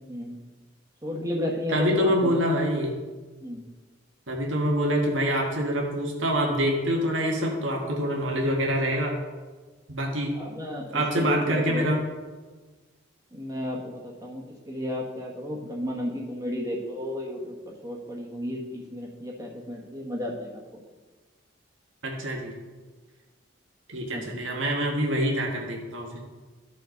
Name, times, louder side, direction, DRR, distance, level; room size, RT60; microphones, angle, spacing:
voice 1, 1.0-2.4 3.4-3.6 10.3-12.0 13.3-20.6 24.1-24.4, left 1 dB, 20° right, -2 dB, 1.4 m, -33 dB
voice 2, 1.7-2.9 4.3-9.2 9.9-10.3 10.9-12.0 22.0-22.5 23.9-26.2, equal, 80° right, -1 dB, 1.5 m, -25 dB
13.5 x 5.7 x 3.9 m, 1.3 s
head